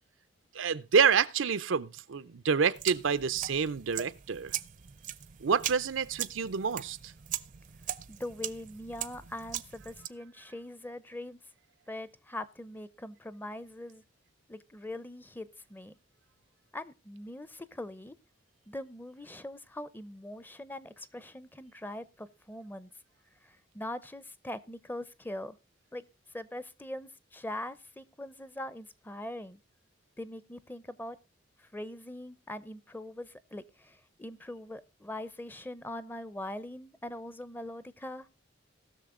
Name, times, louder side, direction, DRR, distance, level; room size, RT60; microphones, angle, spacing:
voice 1, 0.5-4.6 5.4-7.1, right 6 dB, 90° right, 0.6 m, -28 dB
sound 1, 2.7-10.1, right 11 dB, 40° right, 0.5 m, -40 dB
voice 2, 8.1-11.4 11.9-14.0 14.5-16.0 16.7-18.2 18.7-22.9 23.4-25.6 25.9-26.1 26.3-29.6 30.2-31.2 31.6-38.3, left 1 dB, 10° left, 0.5 m, -42 dB
18.0 x 6.6 x 3.7 m
head